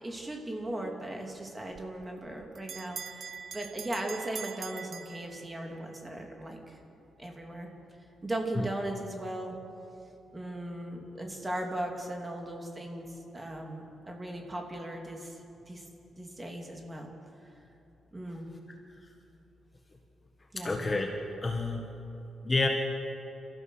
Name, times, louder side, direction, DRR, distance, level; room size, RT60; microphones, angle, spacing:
voice 1, 0.0-6.8 7.2-7.7 8.2-9.6 10.3-15.4 15.7-15.8 16.2-17.1 18.1-18.5 20.5-20.8, right 1 dB, 15° right, 1 dB, 2.7 m, -38 dB
Bell, 1.7-5.8, right 6 dB, 45° right, 0.8 m, -43 dB
voice 2, 20.6-21.1 21.4-21.8 22.4-22.7, left 3 dB, 20° left, 2 dB, 1.4 m, -28 dB
28.5 x 15.0 x 6.4 m, 2.9 s
wide cardioid pair, 150°, 0 cm